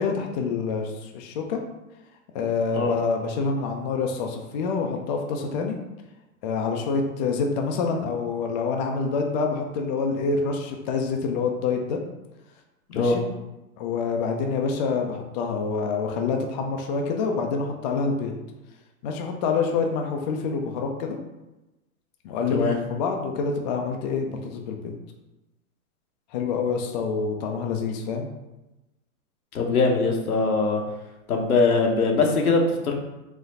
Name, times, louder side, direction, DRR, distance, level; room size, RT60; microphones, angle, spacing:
voice 1, 0.0-1.6 2.3-5.8 6.4-12.0 12.9-13.2 13.8-18.3 19.0-21.2 22.2-24.9 26.3-28.3, left 4 dB, 35° left, 2 dB, 0.4 m, -27 dB
voice 2, 29.5-30.8 31.3-32.9, left 3 dB, 90° left, 1 dB, 1.0 m, -21 dB
4.0 x 2.1 x 4.0 m, 1.0 s
hypercardioid pair, 130°, 42 cm